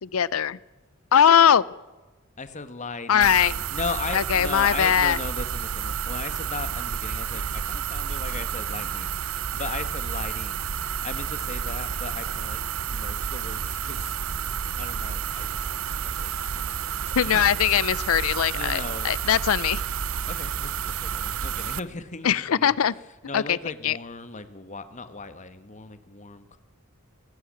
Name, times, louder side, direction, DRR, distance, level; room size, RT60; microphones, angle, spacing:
voice 1, 0.0-0.6 1.1-1.6 3.1-3.5 4.1-5.2 17.2-19.8 22.2-22.9 23.3-23.6 23.8-24.0, left 8 dB, 85° left, 21 dB, 0.5 m, -20 dB
voice 2, 2.4-14.2 14.8-17.4 18.5-19.1 20.3-22.7 23.2-26.6, left 4 dB, 35° left, 11 dB, 1.4 m, -37 dB
sound 1, 3.2-21.8, right 7 dB, 85° right, 0.7 m, -30 dB
18.5 x 17.0 x 8.8 m, 1.2 s
head